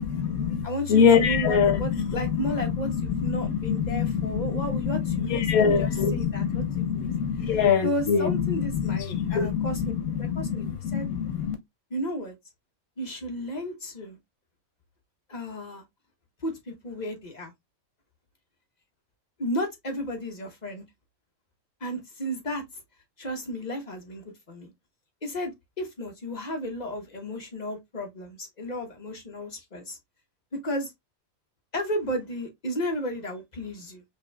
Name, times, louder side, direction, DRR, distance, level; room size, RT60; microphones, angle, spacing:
voice 1, 0.0-2.1 2.6-2.8 3.2-11.5, left 7 dB, 80° left, 1.2 m, -24 dB
voice 2, 0.6-7.1 7.4-9.8 10.2-11.1 11.9-12.3 13.0-14.2 15.3-15.8 16.4-17.5 19.4-20.8 21.8-22.8 23.2-24.7 25.2-30.0 30.5-30.9 31.7-34.0, equal, 35° left, 1.1 m, -33 dB
5.1 x 2.7 x 2.3 m
omnidirectional pair, 1.5 m